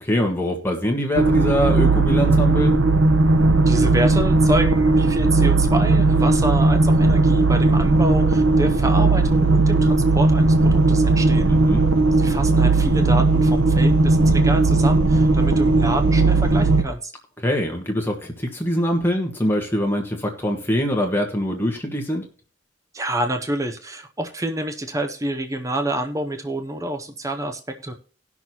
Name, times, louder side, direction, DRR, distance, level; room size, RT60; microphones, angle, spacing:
voice 1, 0.0-2.8 11.5-11.8 17.4-22.2, equal, 10° left, 1 dB, 1.3 m, -23 dB
sound 1, 1.1-16.8, right 3 dB, 80° right, 0.8 m, -17 dB
voice 2, 3.7-11.5 12.1-17.1 22.9-27.9, right 1 dB, 15° right, 6 dB, 0.7 m, -27 dB
18.5 x 6.1 x 2.8 m, 0.38 s
head